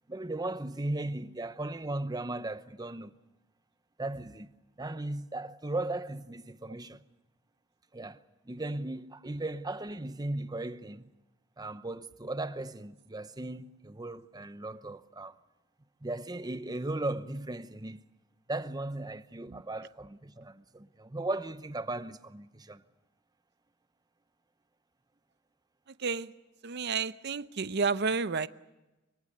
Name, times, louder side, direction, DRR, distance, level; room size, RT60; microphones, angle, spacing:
voice 1, 0.1-3.1 4.0-4.5 4.8-7.0 7.9-11.1 11.6-15.4 16.0-18.0 18.5-22.8, right 2 dB, 20° right, 0.8 m, -37 dB
voice 2, 25.9-26.3 26.6-28.5, right 4 dB, 55° right, 0.7 m, -31 dB
24.5 x 23.5 x 6.7 m
head